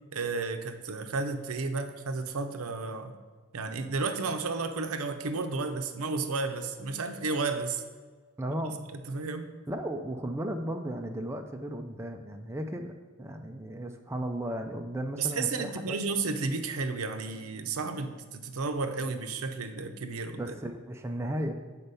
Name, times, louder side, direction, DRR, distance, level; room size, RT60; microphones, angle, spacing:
voice 1, 0.1-3.1 3.5-7.8 8.9-9.5 15.2-20.5, right 4 dB, 75° right, 8 dB, 0.6 m, -32 dB
voice 2, 8.4-8.8 9.7-12.9 13.2-16.0 20.4-21.5, right 1 dB, 10° right, 4 dB, 0.4 m, -35 dB
6.6 x 4.4 x 5.5 m, 1.4 s
head